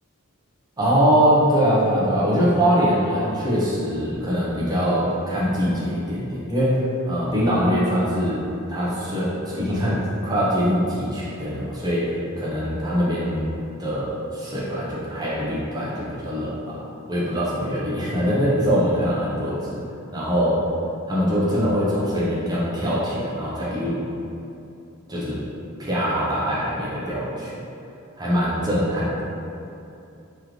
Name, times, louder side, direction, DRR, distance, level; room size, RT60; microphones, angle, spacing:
voice 1, 0.8-8.4 8.7-13.5 13.8-16.8 17.1-19.8 20.1-20.7 21.1-24.0 25.1-25.4 25.8-27.5 28.2-29.2, equal, 20° right, -8 dB, 0.9 m, -23 dB
3.2 x 3.2 x 3.8 m, 2.7 s
head